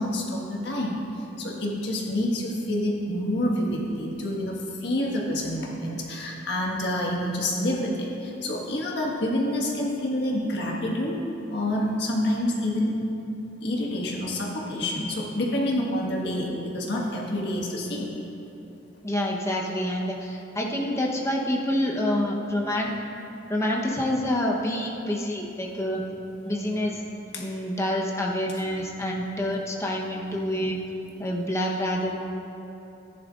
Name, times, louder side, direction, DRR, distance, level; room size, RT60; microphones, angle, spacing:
voice 1, 0.0-11.2 11.5-13.0 13.6-18.1 27.3-27.4, left 1 dB, 65° left, -2 dB, 1.6 m, -28 dB
voice 2, 19.0-22.9 23.5-26.0 26.4-27.0 27.4-30.8 31.2-32.1, left 1 dB, 15° left, -2 dB, 1.0 m, -27 dB
14.5 x 10.5 x 2.5 m, 2.9 s
head